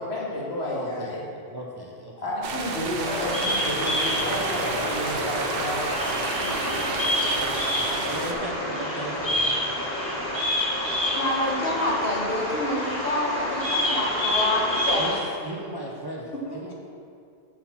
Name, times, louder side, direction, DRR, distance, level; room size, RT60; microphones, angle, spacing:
voice 1, 0.0-1.2 2.2-6.1, left 1 dB, 85° left, -6 dB, 1.9 m, -31 dB
voice 2, 0.7-2.1 8.1-9.6 15.0-15.2 15.4-16.7, right 1 dB, 25° right, -3 dB, 0.7 m, -36 dB
sound 1, 2.4-8.3, right 4 dB, 65° right, 0.8 m, -31 dB
Bird vocalization bird call bird song, 3.0-15.1, left 1 dB, 25° left, 2.0 m, -27 dB
voice 3, 11.1-15.0 16.5-16.6, left 1 dB, 65° left, -2 dB, 1.4 m, -27 dB
7.2 x 4.4 x 5.7 m, 2.4 s
omnidirectional pair, 1.1 m